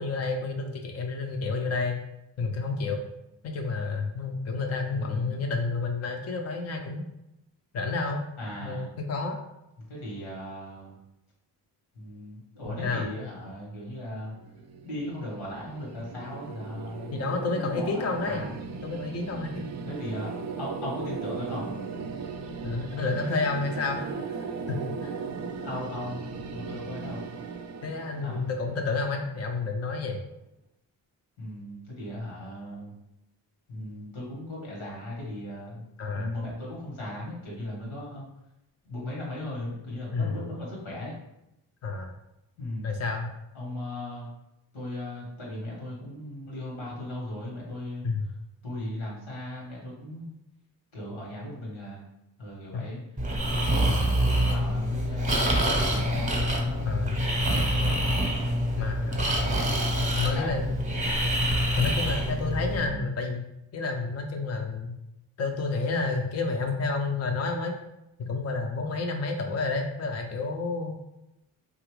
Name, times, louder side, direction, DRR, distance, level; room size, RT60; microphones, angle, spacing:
voice 1, 0.0-2.0 2.4-3.0 3.4-7.1 7.7-8.2 8.6-9.4 12.7-13.1 17.1-18.4 18.8-19.7 22.6-24.0 24.7-25.1 27.8-30.2 36.0-36.3 40.1-40.4 41.8-42.1 42.8-43.3 48.0-48.2 52.7-52.8 56.9-57.2 57.8-57.9 58.8-59.3 60.1-60.7 61.8-63.5 63.7-64.9 65.4-67.8 68.2-71.0, left 3 dB, 35° left, 3 dB, 0.5 m, -30 dB
voice 2, 4.9-5.4 8.4-8.9 9.9-11.0 11.9-14.3 14.8-18.5 19.9-20.3 20.6-21.7 25.6-27.3 28.2-28.4 31.4-32.9 33.7-35.8 36.1-38.3 38.8-41.1 42.6-42.9 43.5-44.3 44.7-48.0 48.6-50.3 50.9-52.0 52.4-53.0 53.4-56.8 57.5-58.7 59.4-59.8 60.1-60.5 62.7-63.0, left 1 dB, 80° left, -3 dB, 1.3 m, -37 dB
sound 1, 14.4-29.4, right 5 dB, 40° right, 0.4 m, -38 dB
Breathing, 53.2-62.9, equal, 15° right, 0.8 m, -26 dB
2.8 x 2.4 x 3.1 m, 0.88 s
supercardioid pair, 45°, 46 cm